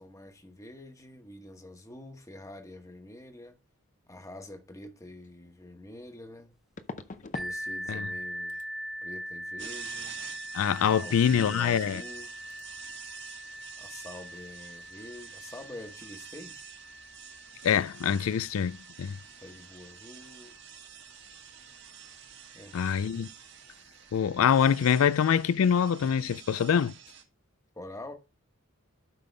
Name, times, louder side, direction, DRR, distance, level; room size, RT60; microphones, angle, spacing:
voice 1, 0.0-3.6 4.1-6.5 7.3-8.6 9.0-10.2 10.9-12.4 13.8-16.7 19.4-20.6 22.5-22.8 27.7-28.1, left 1 dB, 15° left, 1.1 m, -46 dB
sound 1, 5.2-5.3 6.8-7.6 7.8-8.2 8.5-8.7 11.6-11.7 12.0-12.2 12.5-12.6, left 3 dB, 35° left, 0.6 m, -42 dB
sound 2, 7.3-22.9 23.7-23.8 24.3-24.4, equal, ahead, 0.6 m, -42 dB
sound 3, 9.6-27.2, right 9 dB, 55° right, 1.7 m, -48 dB
voice 2, 10.5-12.0 17.6-18.7 19.0-19.2 22.7-23.3 24.1-26.9, left 7 dB, 80° left, 0.4 m, -24 dB
12.0 x 5.3 x 3.3 m
head